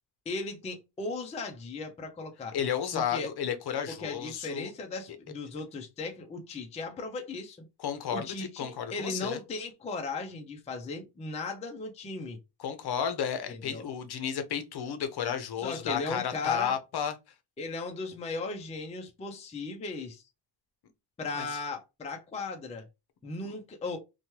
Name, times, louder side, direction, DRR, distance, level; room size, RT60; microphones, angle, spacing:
voice 1, 0.3-2.6 2.9-3.3 3.9-7.6 8.1-12.4 13.5-13.8 15.6-16.7 17.6-20.2 21.2-22.9 23.2-24.0, left 3 dB, 15° left, 0.4 m, -37 dB
voice 2, 2.5-4.7 7.8-9.4 12.6-17.1 21.4-21.5 23.4-23.5, left 8 dB, 60° left, 0.7 m, -32 dB
3.1 x 2.2 x 2.7 m
wide cardioid pair, 170°, 44 cm